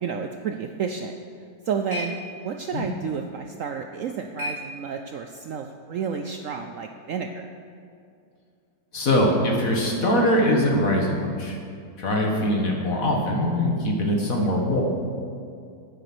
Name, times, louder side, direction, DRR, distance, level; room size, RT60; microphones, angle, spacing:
voice 1, 0.0-1.1 1.7-2.2 2.4-7.5, right 6 dB, 70° right, 5 dB, 0.8 m, -31 dB
sound 1, 1.1-5.4, left 1 dB, 30° left, 3.7 m, -39 dB
voice 2, 8.9-11.6 12.0-14.8, left 1 dB, 50° left, 0 dB, 1.8 m, -22 dB
9.5 x 9.4 x 6.0 m, 2.4 s
omnidirectional pair, 1.9 m